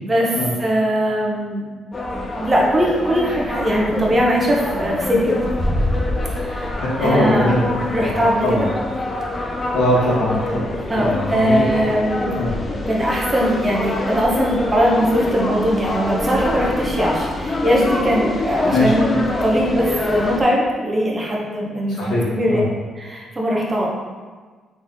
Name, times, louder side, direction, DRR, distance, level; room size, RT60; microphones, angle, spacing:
voice 1, 0.0-1.6 2.4-5.4 6.4-7.6 7.9-8.7 10.9-12.4 12.7-22.6 22.9-23.9, equal, 25° right, -3 dB, 1.1 m, -20 dB
sound 1, 1.9-20.4, left 2 dB, 30° left, 0.6 m, -25 dB
voice 2, 6.8-8.7 9.7-10.6 11.0-11.6 12.3-12.5 18.7-18.9 22.0-22.6, left 1 dB, 85° left, -6 dB, 1.4 m, -21 dB
4.1 x 3.3 x 3.6 m, 1.4 s
cardioid pair, 90°, 0 cm